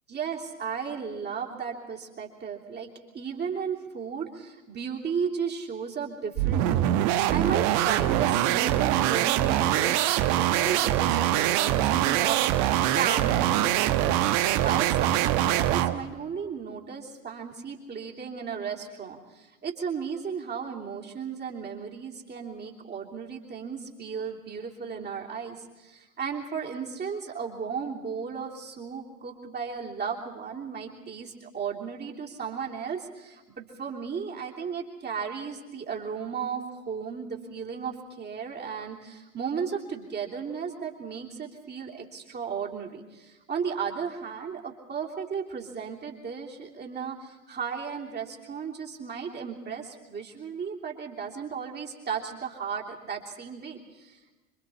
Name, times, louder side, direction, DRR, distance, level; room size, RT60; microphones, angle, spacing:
voice 1, 0.1-2.9 3.1-14.2 14.6-54.3, right 6 dB, 25° right, -2 dB, 3.2 m, -35 dB
sound 1, 6.3-16.0, right 13 dB, 45° right, 1.2 m, -24 dB
26.5 x 24.0 x 4.3 m, 1.1 s
figure-of-eight pair, 85°, 41 cm